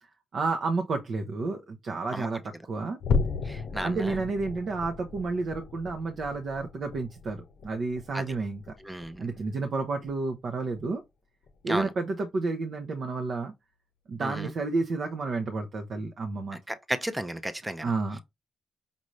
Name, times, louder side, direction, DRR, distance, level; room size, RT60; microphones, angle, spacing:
voice 1, 0.3-3.0 3.8-8.6 9.2-11.0 11.6-13.5 14.1-16.6 17.8-18.2, right 3 dB, 60° right, 0.7 m, -31 dB
sound 1, 3.0-9.7 10.0-10.3 10.7-10.9 11.4-11.6, left 4 dB, 75° left, 0.6 m, -35 dB
voice 2, 3.4-4.2 8.1-8.3 8.8-9.3 11.7-11.9 14.2-14.5 16.5-17.9, right 1 dB, 10° right, 0.5 m, -34 dB
5.3 x 2.5 x 3.1 m
cardioid pair, 85°, 0 cm